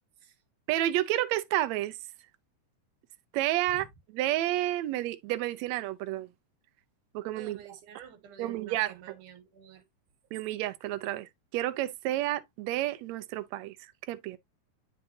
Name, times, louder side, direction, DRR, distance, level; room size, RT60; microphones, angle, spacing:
voice 1, 0.7-2.0 3.3-3.9 4.1-6.3 7.1-7.6 8.4-8.9 10.3-13.8 14.1-14.4, right 14 dB, 75° right, 1.9 m, -30 dB
voice 2, 7.3-9.8, right 8 dB, 90° right, 2.9 m, -50 dB
10.5 x 3.7 x 2.7 m
omnidirectional pair, 3.5 m